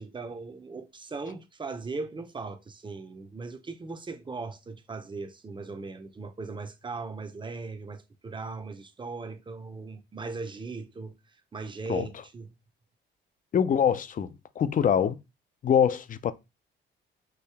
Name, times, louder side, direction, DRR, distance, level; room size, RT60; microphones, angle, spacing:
voice 1, 0.0-11.2 11.5-12.5, right 3 dB, 25° right, 0.7 m, -38 dB
voice 2, 13.5-14.3 14.6-15.2 15.6-16.3, left 8 dB, 45° left, 0.4 m, -24 dB
4.7 x 2.7 x 3.4 m
cardioid pair, 90°, 20 cm